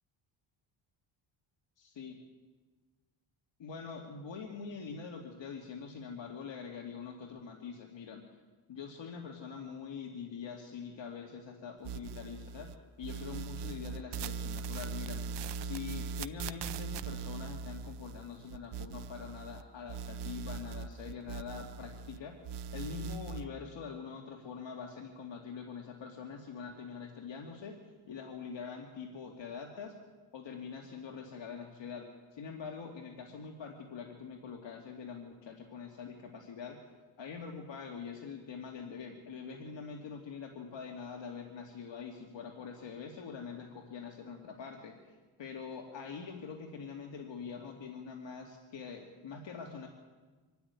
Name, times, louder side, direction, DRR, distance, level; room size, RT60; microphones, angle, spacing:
voice 1, 3.6-8.2 8.7-12.7 13.0-15.2 15.6-22.4 22.7-27.8 28.1-29.9 30.3-36.8 37.2-49.9, left 6 dB, 60° left, 2 dB, 2.4 m, -44 dB
sound 1, 11.8-12.7 13.0-19.6 19.9-22.2 22.4-23.4, right 6 dB, 55° right, 0.7 m, -40 dB
25.0 x 13.0 x 9.7 m, 1.3 s
cardioid pair, 145°, 49 cm